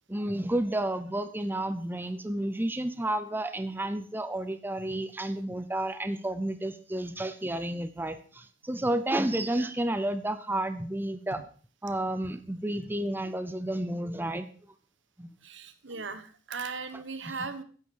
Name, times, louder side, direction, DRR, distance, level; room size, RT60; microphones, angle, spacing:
voice 1, 0.1-11.4 11.8-14.4 15.2-15.3 17.2-17.4, right 1 dB, 10° right, 11 dB, 0.7 m, -31 dB
voice 2, 15.4-17.6, right 4 dB, 75° right, 11 dB, 1.4 m, -38 dB
15.0 x 10.5 x 4.7 m, 0.42 s
head